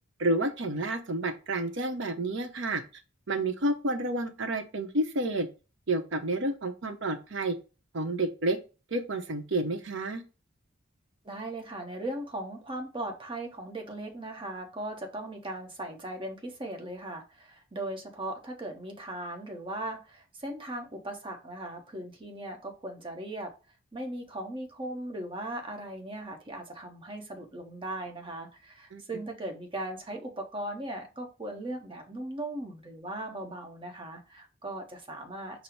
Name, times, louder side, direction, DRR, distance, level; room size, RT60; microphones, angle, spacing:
voice 1, 0.2-2.8 3.3-5.5 5.9-7.6 7.9-8.6 8.9-10.2 28.9-29.0, right 2 dB, 65° right, 7 dB, 0.7 m, -30 dB
voice 2, 11.2-23.5 23.9-35.6, right 1 dB, 25° right, 3 dB, 0.9 m, -38 dB
5.4 x 2.0 x 4.4 m, 0.32 s
head